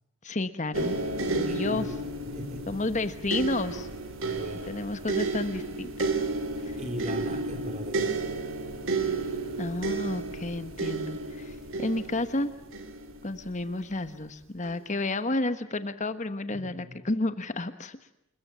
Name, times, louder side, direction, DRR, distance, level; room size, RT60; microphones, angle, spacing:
voice 1, 0.2-1.0 1.3-1.9 2.7-3.9 4.7-6.1 6.6-6.8 9.6-12.5 13.2-18.0, left 2 dB, 35° left, 11 dB, 1.2 m, -31 dB
sound 1, 0.7-13.8 14.6-14.8, right 3 dB, 60° right, 3.3 m, -32 dB
voice 2, 1.5-2.8 4.2-5.0 6.8-8.2 16.5-17.0, right 1 dB, 30° right, 7 dB, 3.2 m, -39 dB
28.5 x 22.0 x 7.4 m, 0.82 s
head